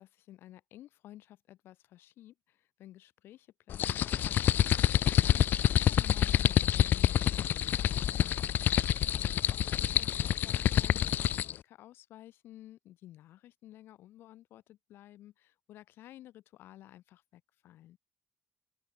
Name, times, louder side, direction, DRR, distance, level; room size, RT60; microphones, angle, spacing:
voice 1, 0.0-8.6 9.3-18.0, left 14 dB, 90° left, 5.9 m, -54 dB
sound 1, 3.7-11.6, left 11 dB, 60° left, 0.6 m, -27 dB
open air
cardioid pair, 155°, 4 cm